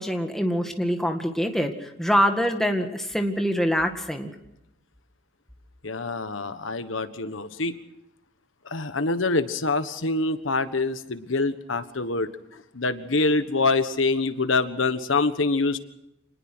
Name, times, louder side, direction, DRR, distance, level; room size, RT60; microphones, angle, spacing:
voice 1, 0.0-4.3, equal, ahead, 4 dB, 2.0 m, -24 dB
voice 2, 5.8-7.8 8.6-12.3 12.7-15.8, left 3 dB, 80° left, 11 dB, 1.4 m, -25 dB
26.5 x 20.0 x 6.2 m, 0.83 s
head